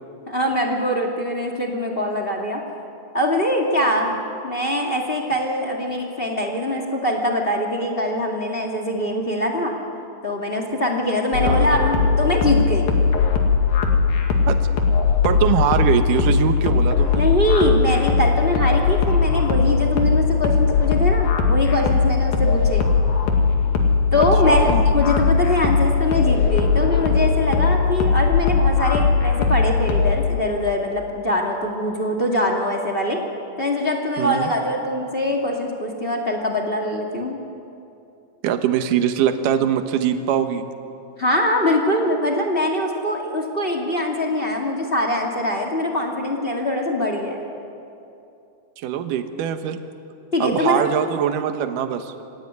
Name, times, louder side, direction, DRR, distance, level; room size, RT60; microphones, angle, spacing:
voice 1, 0.3-2.6 3.1-4.2 4.4-9.7 10.2-12.9 17.1-22.9 24.1-33.2 33.6-37.4 41.2-47.4 50.3-50.9, left 1 dB, 20° left, 2 dB, 1.8 m, -23 dB
sound 1, 11.3-30.1, left 5 dB, 75° left, 3.8 m, -19 dB
voice 2, 15.2-17.3 24.1-24.8 34.2-34.5 38.4-40.6 48.8-49.8 50.4-52.1, right 9 dB, 70° right, 8 dB, 2.6 m, -22 dB
26.5 x 16.5 x 9.6 m, 2.7 s
omnidirectional pair, 4.1 m